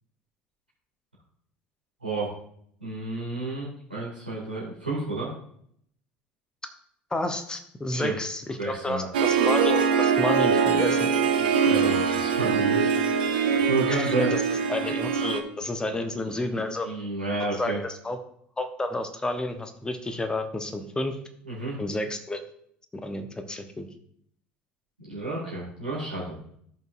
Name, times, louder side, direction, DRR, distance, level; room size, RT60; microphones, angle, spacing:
voice 1, 2.8-5.3 7.9-8.1 8.6-9.0 11.4-13.3 13.7-14.3 16.2-17.8 21.5-21.8 25.0-26.4, right 2 dB, 85° right, -7 dB, 2.3 m, -31 dB
voice 2, 7.1-11.1 13.9-14.4 14.7-16.9 17.5-18.2 18.6-21.2 21.8-22.4 22.9-23.9, left 2 dB, 15° left, 7 dB, 1.0 m, -30 dB
Harp, 9.1-15.4, right 6 dB, 70° right, 0.8 m, -23 dB
13.5 x 5.4 x 2.5 m, 0.67 s
figure-of-eight pair, 65°, 5 cm